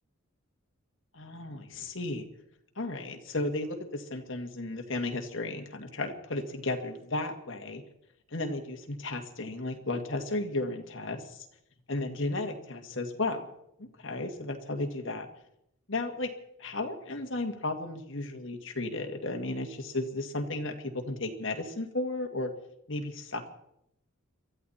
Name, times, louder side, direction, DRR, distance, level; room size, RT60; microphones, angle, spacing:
voice 1, 1.1-2.2 2.8-7.8 8.3-11.5 11.9-13.5 13.8-15.3 15.9-16.3 16.6-22.5 22.9-23.5, left 2 dB, 65° left, 4 dB, 2.0 m, -34 dB
23.0 x 14.0 x 4.3 m, 0.77 s
head